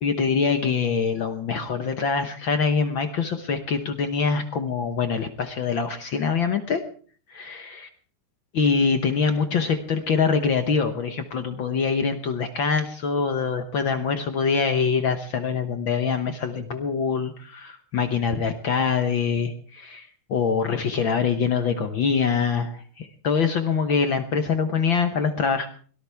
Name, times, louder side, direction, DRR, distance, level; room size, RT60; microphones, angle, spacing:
voice 1, 0.0-6.8 7.3-7.9 8.5-25.7, left 5 dB, 60° left, 7 dB, 1.3 m, -24 dB
23.0 x 17.5 x 3.5 m, 0.44 s
omnidirectional pair, 3.5 m